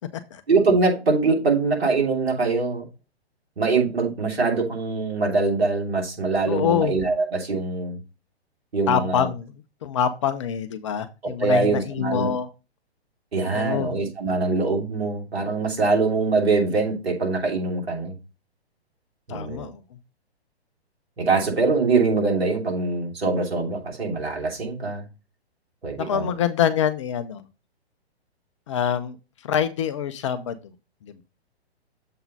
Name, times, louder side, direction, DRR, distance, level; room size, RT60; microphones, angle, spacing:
voice 1, 0.5-2.8 3.6-8.0 8.7-9.3 11.2-12.3 13.3-18.2 19.3-19.7 21.2-25.0 25.8-26.3, right 3 dB, 65° right, 2.9 m, -23 dB
voice 2, 6.5-7.0 8.9-9.5 9.8-12.5 13.5-14.0 19.3-19.8 26.0-27.4 28.7-29.2 29.4-30.7 31.1-31.2, left 9 dB, 30° left, 0.5 m, -25 dB
7.3 x 3.8 x 5.3 m
figure-of-eight pair, 125°, 33 cm